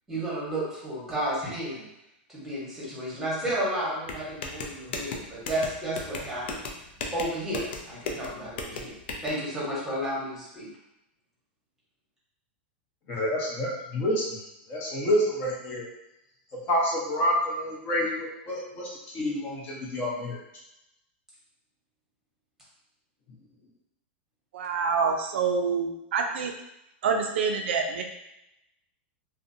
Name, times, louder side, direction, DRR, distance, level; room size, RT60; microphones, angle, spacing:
voice 1, 0.1-1.9 2.3-6.6 7.1-8.9 9.2-10.7, right 1 dB, 5° right, -7 dB, 1.1 m, -32 dB
sound 1, 4.1-9.3, left 3 dB, 70° left, 0.4 m, -36 dB
voice 2, 13.2-14.4 14.7-15.9 16.7-18.9 19.1-20.4, equal, 35° left, -4 dB, 0.8 m, -28 dB
voice 3, 24.5-26.5 27.0-28.0, right 5 dB, 80° right, 3 dB, 0.4 m, -26 dB
2.5 x 2.1 x 2.6 m, 0.85 s
supercardioid pair, 145°, 6 cm